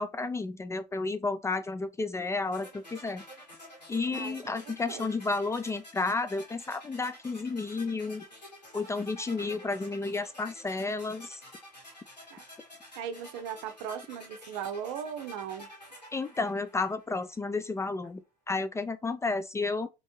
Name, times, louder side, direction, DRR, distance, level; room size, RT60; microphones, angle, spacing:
voice 1, 0.0-3.2 3.9-8.2 8.7-11.4 16.1-18.2 18.5-19.9, left 3 dB, 15° left, 0.4 m, -32 dB
sound 1, 2.5-17.4, left 1 dB, 90° left, 1.6 m, -50 dB
voice 2, 4.6-5.1 12.3-12.4 13.0-15.7, right 8 dB, 55° right, 0.7 m, -38 dB
4.1 x 3.0 x 3.0 m
figure-of-eight pair, 70°, 21 cm